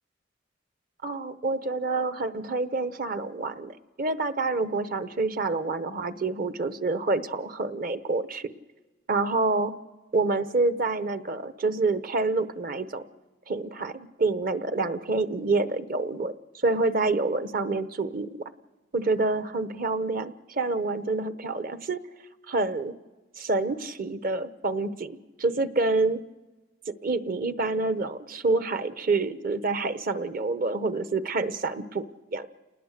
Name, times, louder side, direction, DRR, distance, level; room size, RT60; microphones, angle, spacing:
voice 1, 1.0-8.5 9.1-9.7 10.1-13.0 13.5-16.3 16.6-18.3 18.9-22.0 22.5-22.9 23.4-26.2 26.9-32.0 32.3-32.5, right 3 dB, 50° right, 12 dB, 1.0 m, -27 dB
28.5 x 20.0 x 6.6 m, 1.2 s
head